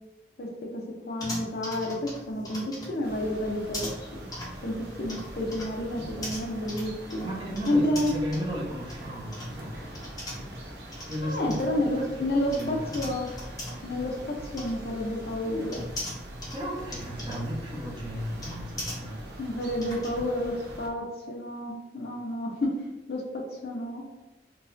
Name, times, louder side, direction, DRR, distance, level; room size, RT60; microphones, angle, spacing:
voice 1, 0.7-4.3 4.6-7.3 7.7-8.1 11.2-13.3 13.8-15.9 19.4-22.8 23.1-24.0, left 1 dB, 60° left, 0 dB, 0.5 m, -30 dB
sound 1, 1.2-20.1, left 1 dB, 20° left, 0.7 m, -41 dB
sound 2, 3.0-20.9, right 1 dB, 75° right, 0.8 m, -43 dB
voice 2, 7.2-9.8 11.1-13.0 16.5-19.2, equal, 25° right, -3 dB, 0.6 m, -35 dB
4.5 x 2.1 x 2.6 m, 1.1 s
head